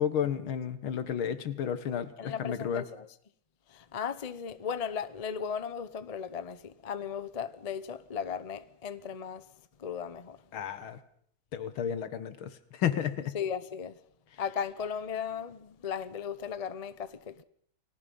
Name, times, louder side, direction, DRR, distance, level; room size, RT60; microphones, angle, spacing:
voice 1, 0.0-2.8 10.5-11.0 11.5-13.4, left 8 dB, 85° left, 2.2 m, -32 dB
voice 2, 2.2-3.1 3.7-9.5 9.8-10.4 13.3-14.0 14.4-17.4, left 7 dB, 50° left, 0.4 m, -36 dB
29.5 x 18.5 x 5.5 m
omnidirectional pair, 2.2 m